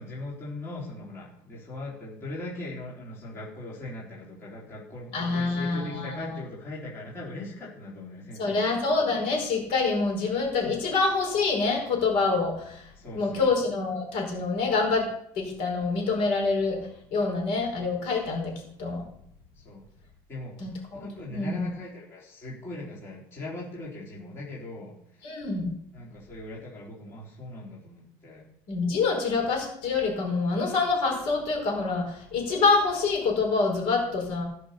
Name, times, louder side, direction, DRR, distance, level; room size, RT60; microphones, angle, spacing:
voice 1, 0.0-8.8 12.9-13.5 19.6-19.8 20.3-20.6 20.9-25.3 25.9-28.4, left 2 dB, 25° left, -6 dB, 4.0 m, -40 dB
voice 2, 5.1-6.3 8.4-12.8 13.1-15.1 15.3-16.8 17.1-18.5 18.8-19.0 20.6-21.0 21.3-21.6 25.2-25.7 28.7-34.4, left 4 dB, 60° left, 1 dB, 5.0 m, -26 dB
17.0 x 6.3 x 6.9 m, 0.69 s
cardioid pair, 170°, 11 cm